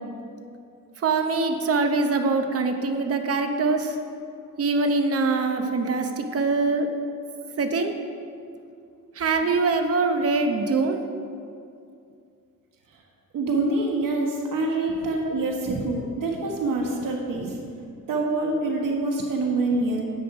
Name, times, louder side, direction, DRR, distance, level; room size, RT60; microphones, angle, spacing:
voice 1, 1.0-4.0 4.6-6.9 7.6-7.9 9.2-11.0 15.7-15.8 17.4-17.5, right 3 dB, 45° right, 6 dB, 0.8 m, -23 dB
voice 2, 13.3-17.5 18.1-20.1, right 2 dB, 75° right, 0 dB, 1.4 m, -26 dB
9.9 x 7.8 x 4.9 m, 2.4 s
cardioid pair, 140°, 33 cm